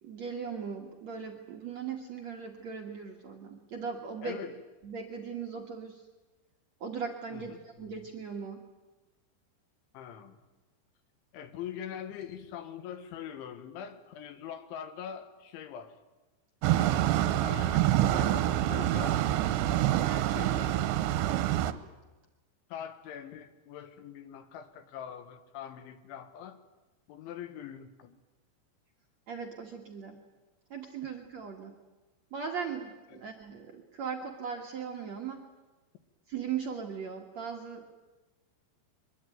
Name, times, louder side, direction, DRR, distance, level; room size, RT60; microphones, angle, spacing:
voice 1, 0.0-4.4 4.8-6.0 6.8-8.6 29.3-30.2 30.7-31.8 32.3-35.4 36.3-37.9, right 6 dB, 55° right, 2 dB, 2.0 m, -38 dB
voice 2, 4.2-4.5 7.3-7.9 9.9-10.4 11.3-16.0 16.7-19.2 20.0-21.1 22.7-26.6 27.1-28.2 31.0-31.1 33.1-33.2, left 9 dB, 80° left, 10 dB, 3.8 m, -43 dB
sound 1, 16.6-21.7, right 13 dB, 75° right, 3.0 m, -26 dB
23.5 x 22.5 x 9.3 m, 1.1 s
omnidirectional pair, 5.4 m